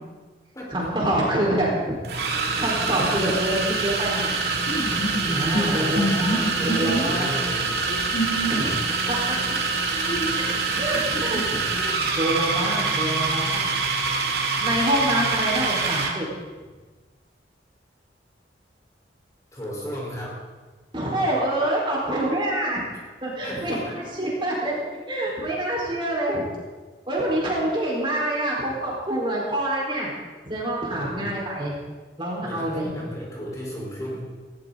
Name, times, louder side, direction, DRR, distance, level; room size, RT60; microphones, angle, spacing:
voice 1, 0.7-1.9 2.3-4.3 5.3-7.3 8.5-8.8 9.1-9.2 10.8-13.7 14.6-16.3 20.9-22.8 23.2-24.7 25.1-26.4 27.1-30.1 30.4-31.7 32.2-32.9, right 1 dB, 30° right, -4 dB, 4.5 m, -26 dB
sound 1, 0.7-0.9 2.0-16.2, right 4 dB, 60° right, 2.2 m, -25 dB
sound 2, 4.6-7.2 7.7-8.7 9.9-11.4, right 1 dB, 55° left, 6.2 m, -27 dB
voice 2, 5.0-7.8 13.6-13.8 19.5-20.4 23.4-24.4 30.9-31.3 32.4-34.3, equal, 20° left, -4 dB, 4.5 m, -35 dB
19.0 x 17.0 x 4.0 m, 1.3 s
head